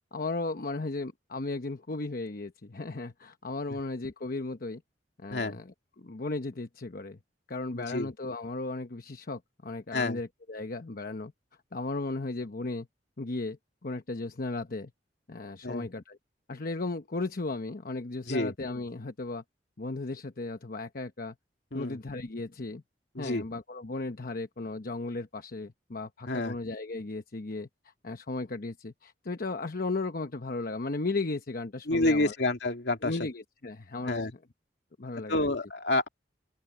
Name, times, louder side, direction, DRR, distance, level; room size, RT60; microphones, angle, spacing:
voice 1, 0.1-4.8 5.2-7.2 7.5-11.3 11.7-12.9 13.2-14.9 15.3-16.2 16.5-19.4 19.8-21.3 21.7-22.8 23.2-27.7 28.0-32.3 33.0-34.4 35.0-35.5, left 3 dB, 55° left, 0.9 m, -35 dB
voice 2, 7.7-8.1 9.9-10.2 15.6-15.9 18.3-18.5 21.7-22.0 23.2-23.4 26.3-26.6 31.9-33.1 34.1-34.3 35.3-36.1, left 2 dB, 70° left, 2.5 m, -28 dB
open air
head